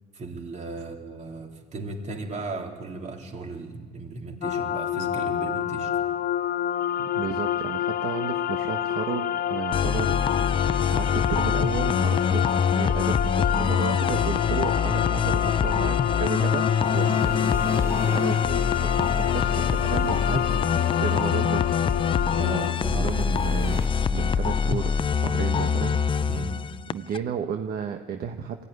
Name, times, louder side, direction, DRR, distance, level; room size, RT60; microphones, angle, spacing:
voice 1, 0.1-5.9 17.0-17.2 22.4-23.1 26.2-26.6, right 3 dB, 45° right, 2 dB, 3.4 m, -36 dB
sound 1, 4.4-22.7, left 10 dB, 60° left, 0.8 m, -28 dB
voice 2, 7.0-10.2 10.9-17.1 18.1-20.6 21.0-21.6 22.9-26.0 26.9-28.6, right 7 dB, 65° right, 5 dB, 1.2 m, -33 dB
sound 2, 9.7-27.2, left 7 dB, 30° left, 0.5 m, -25 dB
sound 3, 16.8-23.9, right 2 dB, 15° right, 1.2 m, -40 dB
21.5 x 15.0 x 9.9 m, 1.5 s
cardioid pair, 110°, 17 cm